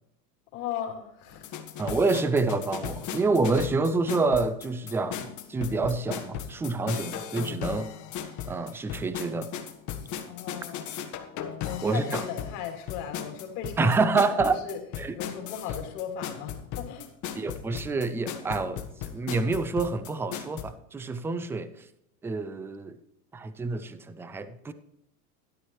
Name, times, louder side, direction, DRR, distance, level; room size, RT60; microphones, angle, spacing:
voice 1, 0.5-1.5 1.8-2.0 10.3-11.0 11.3-14.8 15.1-17.1, left 8 dB, 55° left, 2 dB, 2.9 m, -37 dB
sound 1, 1.3-20.6, left 9 dB, 40° left, 1.5 m, -37 dB
voice 2, 1.8-7.9 8.4-9.5 11.8-12.2 13.8-14.6 15.0-15.1 17.4-18.9 19.1-21.7 22.2-23.0 23.3-24.7, right 3 dB, 5° right, 12 dB, 0.4 m, -27 dB
12.5 x 11.0 x 3.1 m, 0.81 s
hypercardioid pair, 110°, 45 cm